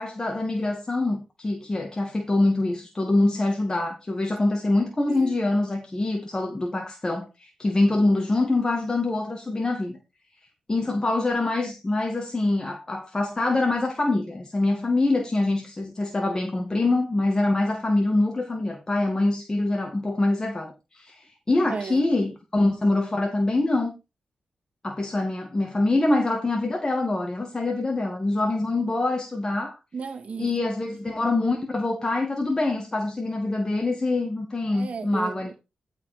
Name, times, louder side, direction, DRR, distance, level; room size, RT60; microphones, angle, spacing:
voice 1, 0.0-10.0 10.7-23.9 24.8-29.8 30.4-35.5, left 2 dB, 25° left, 2.0 m, -25 dB
voice 2, 21.7-22.0 29.9-30.5 34.7-35.5, right 5 dB, 55° right, 1.8 m, -34 dB
12.0 x 5.0 x 5.0 m
cardioid pair, 85°, 3 cm